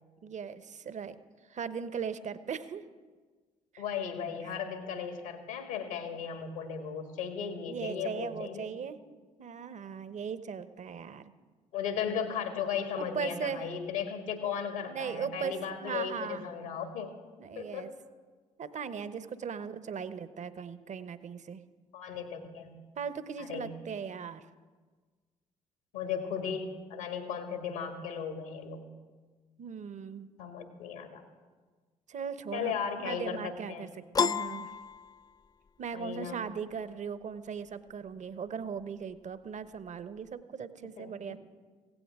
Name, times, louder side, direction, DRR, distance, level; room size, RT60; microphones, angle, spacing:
voice 1, 0.2-1.2 1.5-2.8 3.7-3.8 4.4-4.5 7.7-9.0 9.4-11.3 13.0-13.7 14.9-16.5 17.4-17.9 18.6-21.6 23.0-24.5 29.6-30.3 32.1-32.7 33.0-33.9 34.2-34.7 35.8-41.4, right 6 dB, 45° right, 13 dB, 0.9 m, -38 dB
voice 2, 3.8-8.7 11.7-17.1 17.5-17.9 21.9-22.8 23.4-23.8 25.9-28.9 30.4-31.2 32.5-33.9 35.9-36.4 41.0-41.1, left 7 dB, 80° left, 6 dB, 1.7 m, -36 dB
Piano, 34.1-35.7, left 6 dB, 25° left, 0.3 m, -31 dB
16.5 x 16.5 x 3.6 m, 1.4 s
hypercardioid pair, 45°, 17 cm